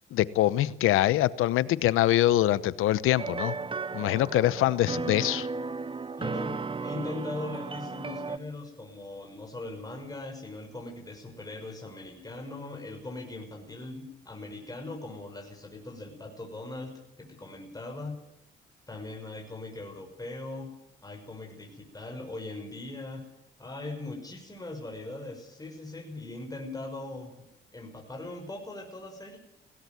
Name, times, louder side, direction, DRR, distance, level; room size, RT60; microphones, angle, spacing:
voice 1, 0.1-3.5 3.9-5.5, left 14 dB, 90° left, 18 dB, 0.9 m, -24 dB
sound 1, 3.2-8.4, right 4 dB, 25° right, 0.8 m, -35 dB
voice 2, 6.2-18.2 18.9-20.7 21.0-23.3 23.6-29.4, left 2 dB, 20° left, 1 dB, 6.0 m, -40 dB
18.5 x 17.5 x 9.4 m, 0.82 s
cardioid pair, 75°, 21 cm